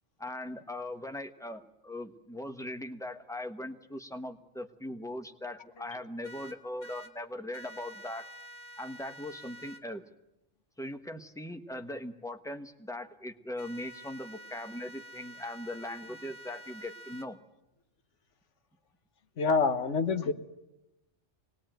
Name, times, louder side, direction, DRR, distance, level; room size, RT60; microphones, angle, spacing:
voice 1, 0.2-8.3 8.8-10.0 10.8-17.4, left 1 dB, 5° left, 7 dB, 1.0 m, -40 dB
sound 1, 6.2-7.1 7.5-9.8 13.6-17.3, equal, 60° left, 1.8 m, -48 dB
voice 2, 19.4-20.3, left 4 dB, 85° left, 9 dB, 1.5 m, -27 dB
24.5 x 19.5 x 9.1 m, 0.96 s
omnidirectional pair, 1.2 m